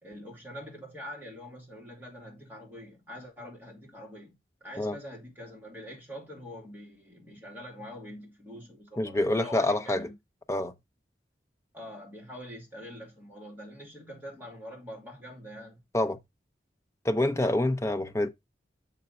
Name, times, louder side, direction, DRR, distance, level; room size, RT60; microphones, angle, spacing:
voice 1, 0.0-10.1 11.7-15.8, equal, 10° right, 2.6 m, -44 dB
voice 2, 9.0-10.1 10.5-10.7 15.9-16.2 17.0-18.3, left 1 dB, 15° left, 0.6 m, -26 dB
6.6 x 5.3 x 4.2 m
head